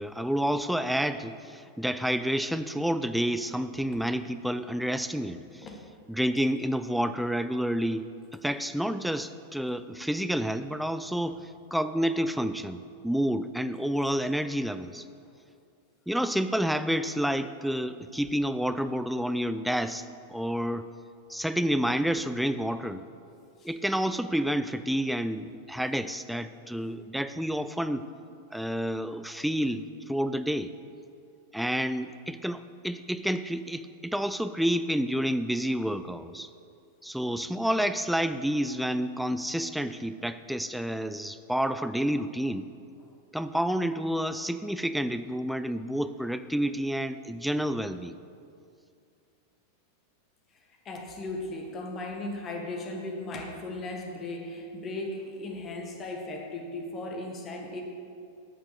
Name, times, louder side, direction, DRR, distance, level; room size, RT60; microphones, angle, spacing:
voice 1, 0.0-5.7 6.1-11.4 11.7-15.1 16.1-20.8 21.3-23.0 23.6-28.0 28.5-30.7 31.5-36.5 37.0-42.7 43.3-48.1, equal, ahead, 11 dB, 0.4 m, -29 dB
voice 2, 50.8-57.8, left 2 dB, 25° left, 2 dB, 1.4 m, -37 dB
9.2 x 5.9 x 6.6 m, 2.5 s
figure-of-eight pair, 90°, 0 cm